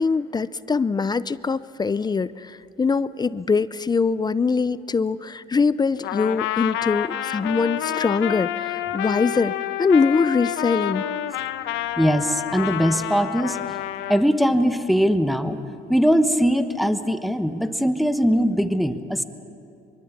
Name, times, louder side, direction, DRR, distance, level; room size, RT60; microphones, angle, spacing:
voice 1, 0.0-11.0, left 4 dB, 20° left, 16 dB, 0.5 m, -23 dB
Trumpet, 6.0-14.2, left 12 dB, 80° left, 1.0 m, -28 dB
voice 2, 12.0-13.6 14.1-15.6 15.9-19.2, equal, ahead, 9 dB, 1.3 m, -21 dB
24.5 x 23.5 x 7.3 m, 2.7 s
cardioid pair, 95°, 19 cm